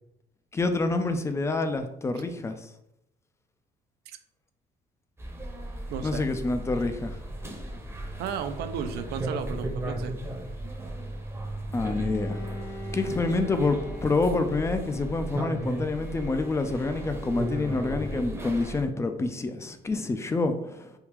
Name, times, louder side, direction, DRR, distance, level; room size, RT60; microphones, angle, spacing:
voice 1, 0.5-2.7 6.0-7.2 11.7-12.5 12.9-20.9, left 3 dB, 15° left, 8 dB, 0.3 m, -27 dB
sound 1, 5.2-18.8, right 1 dB, 15° right, 0.7 m, -35 dB
voice 2, 5.9-6.2 8.2-10.1, right 8 dB, 75° right, 9 dB, 0.4 m, -34 dB
Bowed string instrument, 11.9-18.6, left 1 dB, 65° left, 1.2 m, -44 dB
3.5 x 2.4 x 2.9 m, 0.80 s
cardioid pair, 110°, 17 cm